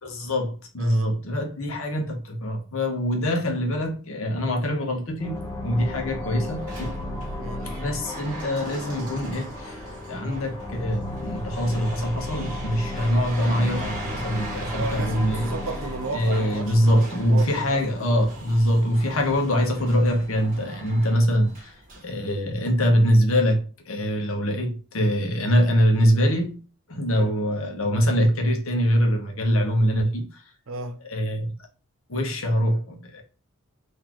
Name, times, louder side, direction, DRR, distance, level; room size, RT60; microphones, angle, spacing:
voice 1, 0.0-6.9 7.6-9.8 10.1-15.5 16.1-21.7 22.0-26.6 26.9-30.4 31.1-31.5 32.1-33.2, equal, 70° left, 0.9 m, -23 dB
sound 1, 5.2-18.5, left 1 dB, 15° left, 0.8 m, -35 dB
sound 2, 5.3-22.8, right 2 dB, 40° right, 1.3 m, -42 dB
voice 2, 7.4-7.8 14.7-17.9 21.0-21.2 27.1-27.4 30.7-31.0, right 3 dB, 65° right, 0.6 m, -34 dB
4.0 x 2.7 x 2.9 m
head